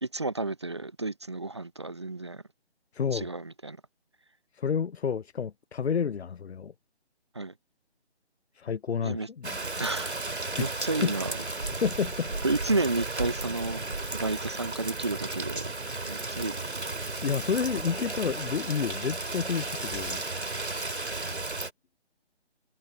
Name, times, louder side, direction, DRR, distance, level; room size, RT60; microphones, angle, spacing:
voice 1, 0.0-2.4 3.1-3.8 7.3-7.5 9.0-9.3 9.8-10.2 10.6-11.3 12.4-13.8 14.1-15.7 16.0-16.7, right 2 dB, 25° right, 0.5 m, -31 dB
voice 2, 2.9-3.3 4.5-6.7 8.6-9.6 10.6-10.7 11.0-11.1 11.8-12.3 17.2-20.2 20.5-21.0, left 6 dB, 75° left, 0.5 m, -30 dB
Rain, 9.4-21.7, right 2 dB, 75° right, 2.5 m, -34 dB
figure-of-eight pair, 150°, 33 cm